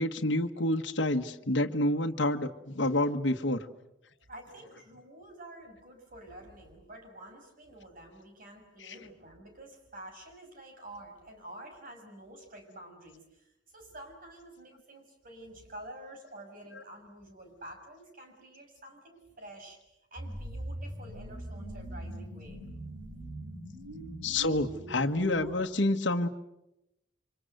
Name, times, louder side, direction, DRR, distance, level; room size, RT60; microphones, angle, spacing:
voice 1, 0.0-3.6 8.8-8.9 24.2-26.3, left 1 dB, 65° left, 5 dB, 1.5 m, -28 dB
voice 2, 4.3-19.8 20.1-22.6, right 1 dB, 45° right, 4 dB, 6.4 m, -49 dB
sound 1, 20.2-25.7, right 1 dB, 70° right, 5.7 m, -41 dB
28.5 x 26.0 x 8.0 m, 0.86 s
head